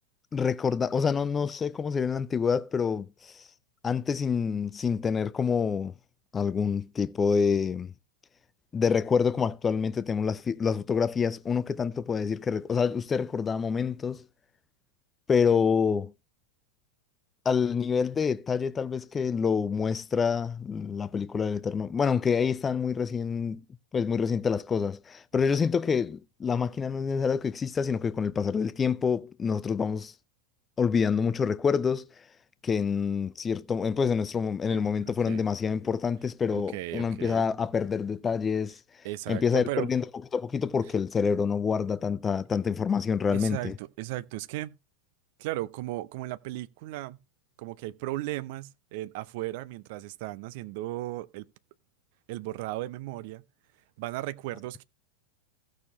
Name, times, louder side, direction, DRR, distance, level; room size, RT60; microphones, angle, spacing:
voice 1, 0.3-3.4 3.8-5.9 6.3-7.9 8.7-14.2 15.3-16.1 17.5-23.6 23.9-30.1 30.8-32.0 32.6-38.8 39.3-40.0 40.3-43.7, left 6 dB, 20° left, 0.4 m, -27 dB
voice 2, 34.7-35.4 36.5-37.5 39.0-39.9 43.3-44.8 45.4-47.2 47.6-51.5 52.3-53.4 54.0-54.8, right 16 dB, 50° right, 0.6 m, -36 dB
16.0 x 6.4 x 3.0 m
figure-of-eight pair, 90°, 0 cm